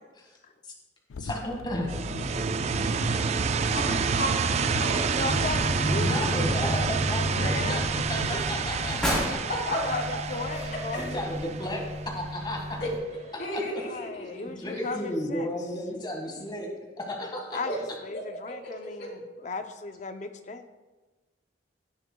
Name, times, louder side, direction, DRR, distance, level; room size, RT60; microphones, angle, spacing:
sound 1, 1.1-9.0, left 4 dB, 90° left, 0.4 m, -40 dB
voice 1, 1.2-2.4 2.7-2.9 6.0-9.6 10.5-11.9 12.1-12.8 13.3-13.8 14.4-17.6, left 1 dB, 25° left, 0 dB, 1.7 m, -34 dB
sound 2, 1.9-12.6, right 5 dB, 35° right, 0.3 m, -29 dB
voice 2, 3.7-5.1 8.3-8.4 9.5-10.0 12.8-13.9 14.7-14.9 17.6-17.8 19.0-19.1, equal, 60° left, -3 dB, 3.3 m, -32 dB
voice 3, 5.1-6.1 7.3-7.8 9.7-11.0 13.8-15.5 17.5-20.7, left 3 dB, 40° left, 8 dB, 0.6 m, -36 dB
sound 3, 5.2-12.9, equal, 5° left, 3.4 m, -32 dB
17.0 x 9.0 x 2.3 m, 1.2 s
head